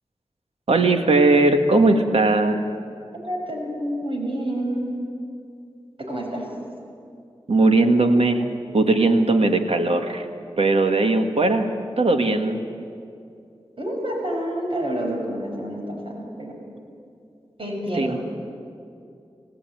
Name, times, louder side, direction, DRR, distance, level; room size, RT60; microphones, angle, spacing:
voice 1, 0.7-2.6 7.5-8.4 8.7-10.3 10.6-11.7 12.0-12.6 17.9-18.2, right 2 dB, 75° right, 5 dB, 2.0 m, -18 dB
voice 2, 3.1-4.9 6.0-6.5 13.8-16.6 17.6-18.2, right 1 dB, 55° right, 0 dB, 6.5 m, -28 dB
26.0 x 17.5 x 9.4 m, 2.5 s
cardioid pair, 50°, 11 cm